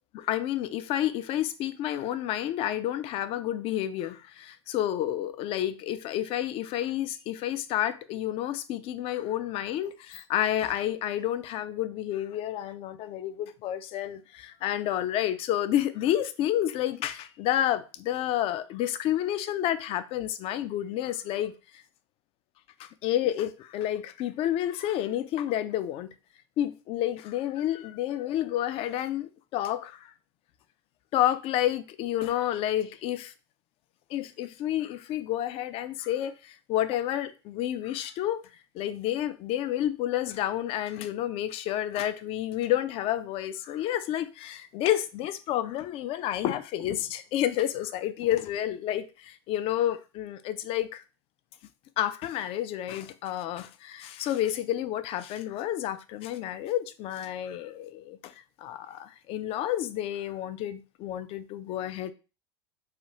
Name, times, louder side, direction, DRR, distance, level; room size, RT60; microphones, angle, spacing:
voice 1, 0.1-21.5 22.8-26.1 26.6-30.1 31.1-33.3 34.1-38.4 38.7-51.0 52.0-58.3 58.6-62.1, left 12 dB, 40° left, 0.3 m, -30 dB
3.3 x 2.3 x 2.8 m
hypercardioid pair, 85°, 15 cm